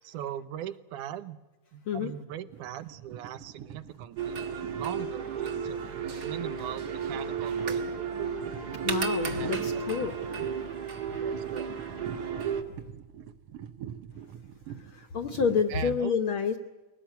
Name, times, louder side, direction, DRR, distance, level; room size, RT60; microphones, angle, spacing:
voice 1, 0.0-1.4 1.7-8.0 9.3-9.7 11.2-11.7 15.7-16.2, right 11 dB, 80° right, 13 dB, 2.4 m, -40 dB
sound 1, 2.3-15.8, right 9 dB, 65° right, 1.7 m, -46 dB
sound 2, 4.2-12.6, right 6 dB, 40° right, 1.8 m, -33 dB
voice 2, 8.8-10.1 14.9-16.6, left 6 dB, 60° left, 7 dB, 1.5 m, -28 dB
22.0 x 18.0 x 9.3 m, 1.1 s
omnidirectional pair, 3.5 m